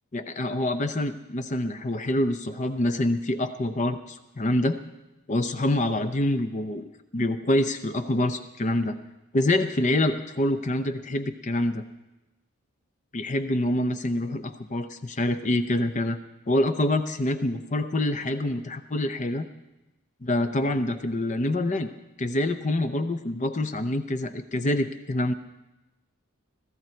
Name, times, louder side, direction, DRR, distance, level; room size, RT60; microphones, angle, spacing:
voice 1, 0.1-4.8 5.3-6.9 7.1-9.0 9.3-11.8 13.1-16.2 16.5-19.5 20.2-21.9 22.2-25.3, left 1 dB, 35° left, 9 dB, 0.7 m, -26 dB
16.0 x 14.0 x 4.5 m, 1.0 s
head